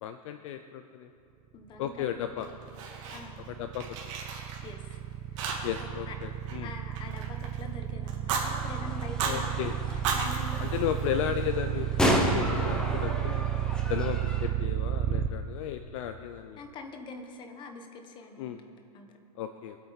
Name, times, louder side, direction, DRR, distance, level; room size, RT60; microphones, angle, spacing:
voice 1, 0.0-1.1 1.8-2.5 3.6-3.8 5.6-6.7 9.2-9.7 10.6-13.4 13.9-16.6 18.4-18.6 19.4-19.8, left 11 dB, 55° left, 8 dB, 0.6 m, -34 dB
voice 2, 1.5-2.2 3.1-3.5 4.6-5.0 5.3-6.1 6.6-10.7 16.6-19.1, left 3 dB, 25° left, 5 dB, 1.2 m, -44 dB
sound 1, 2.0-15.3, right 11 dB, 25° right, 0.4 m, -32 dB
Fire, 2.4-3.5 3.7-5.0 5.4-5.9 6.2-7.6 8.1-8.5 9.0-9.4 9.9-11.5, right 6 dB, 50° right, 2.4 m, -35 dB
sound 2, 8.3-14.5, equal, 5° left, 1.1 m, -32 dB
23.5 x 8.6 x 4.1 m, 2.5 s
supercardioid pair, 150°, 20 cm